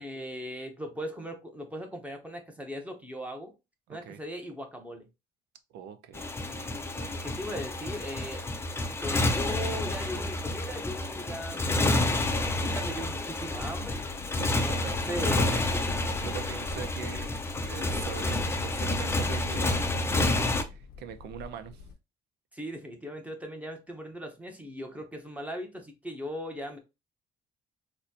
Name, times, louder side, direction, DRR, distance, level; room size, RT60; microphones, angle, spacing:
voice 1, 0.0-3.5 3.9-5.1 7.2-8.4 9.0-14.0 14.6-15.5 22.5-26.8, equal, 10° right, 0.9 m, -38 dB
voice 2, 3.9-4.2 5.7-6.3 6.5-6.7 7.0-7.2 14.3-15.6 16.2-17.3 17.6-21.8, right 8 dB, 75° right, 0.6 m, -42 dB
Motorcycle, 6.1-20.6, left 2 dB, 15° left, 0.5 m, -29 dB
sound 1, 13.5-21.9, left 5 dB, 65° left, 0.6 m, -45 dB
4.1 x 2.2 x 2.8 m
cardioid pair, 110°, 17 cm